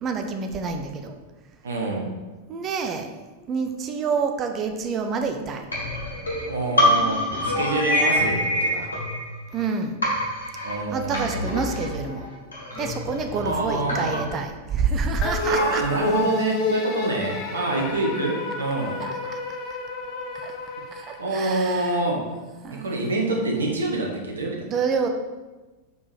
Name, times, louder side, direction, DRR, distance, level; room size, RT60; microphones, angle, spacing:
voice 1, 0.0-1.1 2.5-5.7 9.5-10.0 10.9-12.3 12.8-15.8 19.0-19.4 20.3-20.5 20.9-22.0 22.6-23.2 24.6-25.1, right 5 dB, 30° right, 5 dB, 0.7 m, -28 dB
voice 2, 1.6-2.1 6.5-8.9 10.6-11.4 13.4-14.2 15.5-19.0 21.2-22.3 22.7-24.7, right 2 dB, 70° right, 0 dB, 1.1 m, -26 dB
sound 1, 5.7-9.7 10.0-14.4, left 1 dB, 75° left, 2.0 m, -26 dB
sound 2, 15.2-21.8, left 2 dB, 35° left, 0.8 m, -29 dB
5.3 x 4.8 x 4.8 m, 1.2 s
figure-of-eight pair, 90°, 0 cm